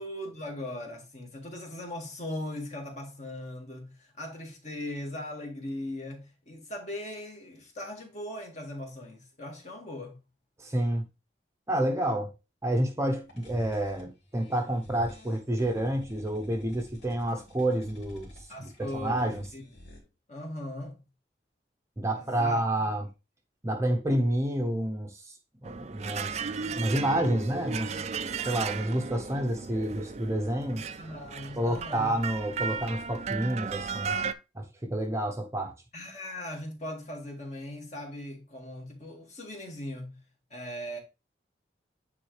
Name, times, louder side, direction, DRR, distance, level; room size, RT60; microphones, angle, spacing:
voice 1, 0.0-10.2 18.5-19.6 20.3-21.0 22.2-22.6 31.0-32.1 35.9-40.2 40.5-41.0, left 1 dB, 40° left, 1.9 m, -39 dB
voice 2, 10.6-11.0 11.7-12.3 12.6-19.4 22.0-23.1 23.6-25.3 25.6-26.4 26.8-28.0 28.5-30.8 31.6-34.1 34.5-35.7, right 1 dB, 15° right, 0.8 m, -29 dB
sound 1, 13.1-20.0, equal, 85° left, 3.0 m, -48 dB
sound 2, 25.6-34.3, right 5 dB, 35° right, 0.4 m, -35 dB
9.4 x 3.8 x 3.2 m
head